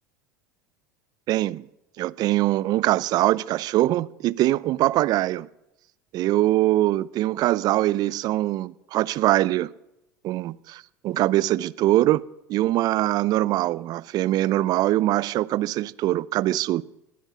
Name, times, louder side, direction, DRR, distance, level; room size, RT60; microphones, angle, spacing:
voice 1, 1.3-1.6 2.0-5.5 6.1-9.7 10.2-12.2 12.5-16.8, right 15 dB, 45° right, 0.6 m, -23 dB
19.5 x 10.0 x 6.0 m
hypercardioid pair, 75°, 9 cm